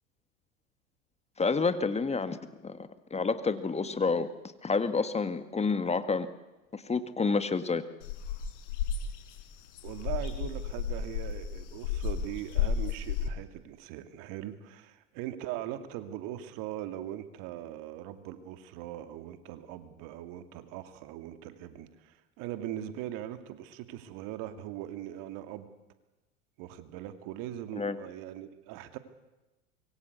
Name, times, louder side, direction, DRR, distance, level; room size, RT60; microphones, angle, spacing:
voice 1, 1.4-4.3 4.6-6.3 6.7-7.8 27.8-28.0, left 4 dB, 15° left, 11 dB, 1.7 m, -29 dB
sound 1, 8.0-13.3, left 7 dB, 70° left, 4.6 m, -33 dB
voice 2, 9.8-25.7 26.6-29.0, right 12 dB, 55° right, 9 dB, 2.7 m, -40 dB
25.0 x 23.0 x 8.3 m, 1.1 s
hypercardioid pair, 95°, 37 cm